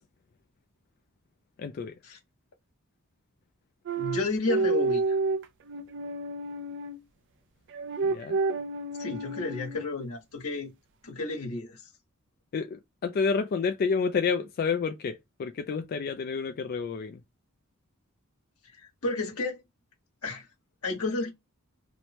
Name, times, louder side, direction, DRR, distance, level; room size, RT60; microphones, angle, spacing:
voice 1, 1.6-1.9 8.0-8.4 12.5-17.2, left 5 dB, 45° left, 0.3 m, -29 dB
sound 1, 3.9-7.0 7.7-10.0, right 3 dB, 60° right, 0.4 m, -30 dB
voice 2, 4.0-5.2 9.0-10.7 11.0-11.8 18.6-19.6 20.2-20.4 20.8-21.3, left 3 dB, 85° left, 1.3 m, -32 dB
3.0 x 2.1 x 2.8 m
head